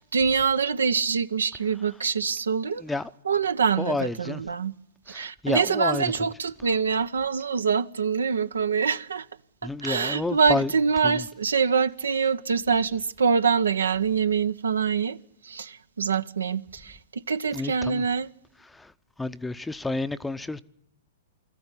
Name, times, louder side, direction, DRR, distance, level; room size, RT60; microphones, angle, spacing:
voice 1, 0.0-2.8 3.2-4.7 5.1-9.3 9.6-15.2 15.4-18.3, right 6 dB, 85° right, 0.8 m, -25 dB
voice 2, 3.8-4.4 5.1-6.0 9.6-10.7 11.0-11.1 17.5-18.0 19.2-20.6, left 2 dB, 5° left, 0.7 m, -29 dB
21.5 x 14.0 x 9.8 m
hypercardioid pair, 120°, 0 cm